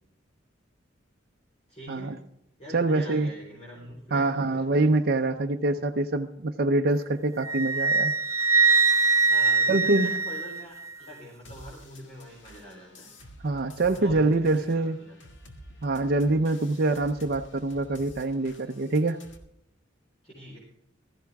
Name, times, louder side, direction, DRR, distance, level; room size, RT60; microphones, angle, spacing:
voice 1, 1.7-2.2 2.6-4.7 9.3-13.1 13.9-15.2 20.2-20.6, equal, 35° left, -5 dB, 4.3 m, -44 dB
voice 2, 2.7-3.3 4.1-8.1 9.7-10.1 13.4-15.0 15.8-19.2, right 2 dB, 55° right, 4 dB, 0.6 m, -25 dB
Wind instrument woodwind instrument, 7.4-10.9, right 4 dB, 15° right, 0.6 m, -23 dB
sound 1, 11.4-19.4, equal, 70° left, 1.9 m, -49 dB
16.0 x 14.0 x 3.5 m, 0.79 s
head